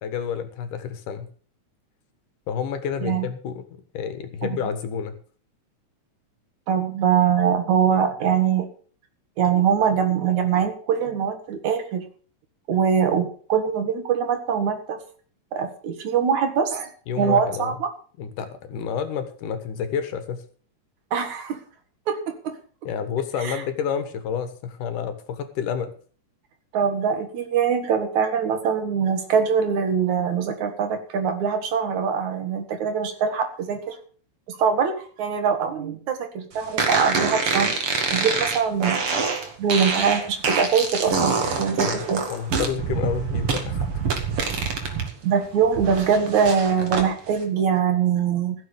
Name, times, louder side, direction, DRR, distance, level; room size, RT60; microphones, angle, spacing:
voice 1, 0.0-1.3 2.5-3.6 3.9-5.2 17.1-17.8 18.2-20.4 22.8-25.9 41.8-42.0 42.3-43.9, left 7 dB, 75° left, 9 dB, 3.0 m, -29 dB
voice 2, 6.7-8.7 9.4-12.0 12.7-15.0 15.5-16.9 17.2-17.9 21.1-21.6 22.1-22.5 23.4-23.6 26.7-34.0 34.5-37.8 38.1-39.0 39.6-42.2 45.2-48.6, right 7 dB, 65° right, 7 dB, 3.1 m, -23 dB
sound 1, 36.8-45.1 45.4-47.1, right 5 dB, 45° right, 2.9 m, -25 dB
15.5 x 7.2 x 6.9 m, 0.43 s
omnidirectional pair, 3.7 m